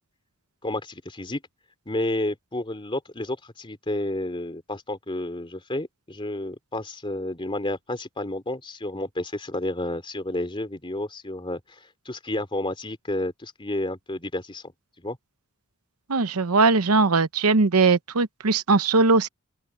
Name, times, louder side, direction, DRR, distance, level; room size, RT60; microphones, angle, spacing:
voice 1, 0.6-1.4 1.9-14.7 15.0-15.2, left 1 dB, 25° left, 3.1 m, -31 dB
voice 2, 16.1-19.3, right 3 dB, 85° right, 0.9 m, -20 dB
open air
head